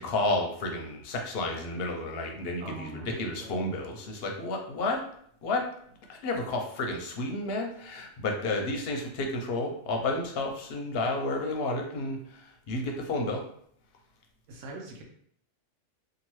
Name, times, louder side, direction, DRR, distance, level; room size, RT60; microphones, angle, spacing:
voice 1, 0.0-5.0 5.4-5.7 6.1-13.5, left 2 dB, 60° left, 2 dB, 0.7 m, -31 dB
voice 2, 2.6-3.6 14.5-15.0, right 2 dB, 80° right, 1 dB, 1.0 m, -42 dB
2.8 x 2.4 x 3.0 m, 0.65 s
omnidirectional pair, 1.3 m